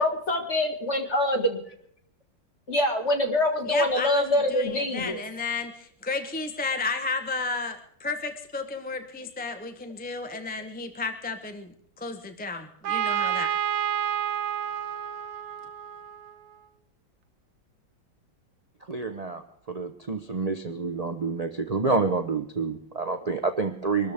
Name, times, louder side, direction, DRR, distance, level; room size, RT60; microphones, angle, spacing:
voice 1, 0.0-1.6 2.7-5.2, left 1 dB, 35° left, 4 dB, 2.2 m, -25 dB
voice 2, 3.7-13.5, left 4 dB, 10° left, 6 dB, 0.7 m, -33 dB
Trumpet, 12.8-16.6, right 10 dB, 80° right, 1.7 m, -29 dB
voice 3, 18.9-19.4 19.7-24.1, right 4 dB, 55° right, 6 dB, 0.4 m, -28 dB
24.0 x 13.5 x 3.6 m, 0.66 s
omnidirectional pair, 2.1 m